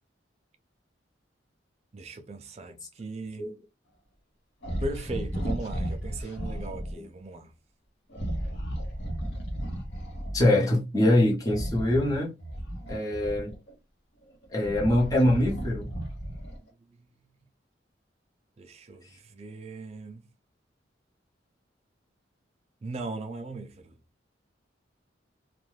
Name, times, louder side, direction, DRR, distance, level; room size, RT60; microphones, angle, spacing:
voice 1, 1.9-3.5 4.8-7.5 18.6-20.3 22.8-24.0, right 2 dB, 35° right, 0.4 m, -38 dB
sound 1, 4.6-7.0 8.1-10.5 11.4-13.7 14.3-16.7, equal, 75° left, 0.9 m, -34 dB
voice 2, 10.3-12.3 12.9-13.5 14.5-15.9, left 1 dB, 20° left, 0.8 m, -23 dB
2.5 x 2.2 x 3.1 m
head